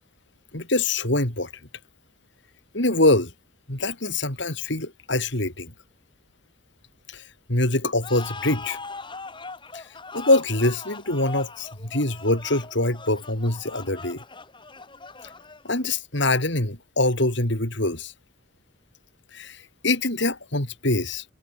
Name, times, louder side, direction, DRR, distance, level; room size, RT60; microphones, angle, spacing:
voice 1, 0.5-1.5 2.7-3.3 3.7-5.7 7.1-7.2 7.5-8.8 9.7-9.8 10.1-14.2 15.6-18.1 19.3-19.6 19.8-21.2, left 2 dB, 60° left, 4.5 m, -24 dB
sound 1, 8.0-15.9, left 4 dB, 25° left, 5.6 m, -40 dB
head